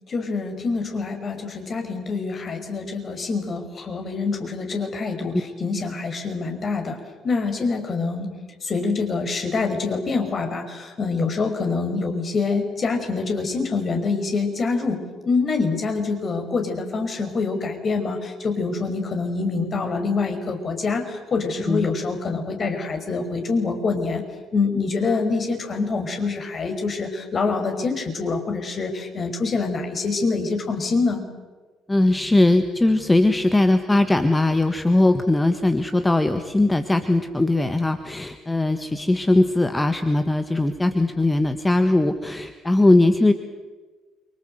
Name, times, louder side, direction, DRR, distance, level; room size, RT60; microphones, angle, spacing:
voice 1, 0.1-7.0 7.2-8.3 8.6-24.2 24.5-31.2, left 4 dB, 40° left, 5 dB, 5.7 m, -25 dB
voice 2, 31.9-43.3, left 2 dB, 15° left, 8 dB, 1.6 m, -20 dB
29.0 x 25.0 x 8.0 m, 1.3 s
figure-of-eight pair, 50°, 0 cm